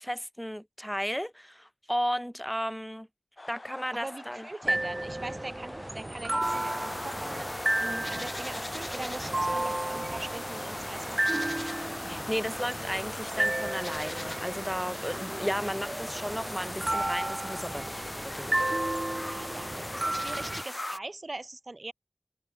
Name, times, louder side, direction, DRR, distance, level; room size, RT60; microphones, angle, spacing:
voice 1, 0.0-3.1 3.5-4.4 7.8-8.0 12.0-18.5, equal, 5° left, 1.3 m, -34 dB
sound 1, 3.4-20.2, left 2 dB, 50° left, 2.1 m, -48 dB
voice 2, 3.9-7.5 8.0-11.6 19.2-21.9, right 2 dB, 60° right, 4.3 m, -42 dB
sound 2, 4.6-20.6, right 1 dB, 35° right, 0.8 m, -33 dB
sound 3, 6.4-21.0, left 1 dB, 30° left, 0.5 m, -39 dB
wide cardioid pair, 60°, 0 cm